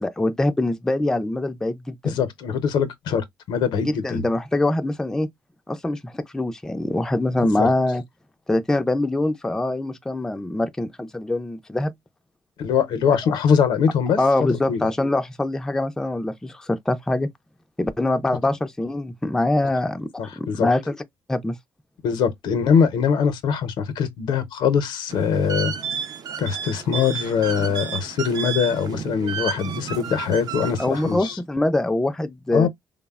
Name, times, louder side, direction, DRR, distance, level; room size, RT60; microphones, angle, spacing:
voice 1, 0.0-2.2 3.8-5.3 5.7-8.0 8.5-11.9 14.2-17.3 17.8-20.1 20.4-21.0 21.3-21.6 30.8-32.7, left 2 dB, 5° left, 0.3 m, -24 dB
voice 2, 2.0-4.2 7.4-7.7 12.6-14.2 14.5-14.8 20.2-20.7 22.0-25.7 26.4-31.4 32.5-32.7, left 7 dB, 75° left, 0.6 m, -22 dB
sound 1, 25.1-31.3, right 7 dB, 55° right, 0.5 m, -32 dB
3.3 x 2.0 x 2.3 m
cardioid pair, 110°, 8 cm